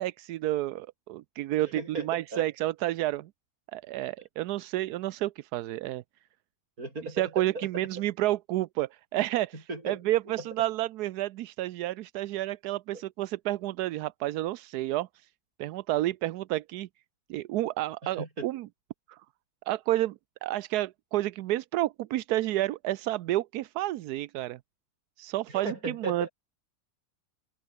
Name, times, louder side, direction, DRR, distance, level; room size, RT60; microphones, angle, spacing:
voice 1, 0.0-3.3 3.7-6.0 7.2-15.3 15.6-16.9 17.3-18.7 19.1-19.2 19.7-24.6 25.2-26.3, right 15 dB, 85° right, 1.1 m, -30 dB
voice 2, 1.7-2.5 6.8-7.7 9.7-10.0 12.9-13.0 18.0-18.5 25.5-26.3, right 2 dB, 60° right, 6.6 m, -36 dB
omnidirectional pair, 1.7 m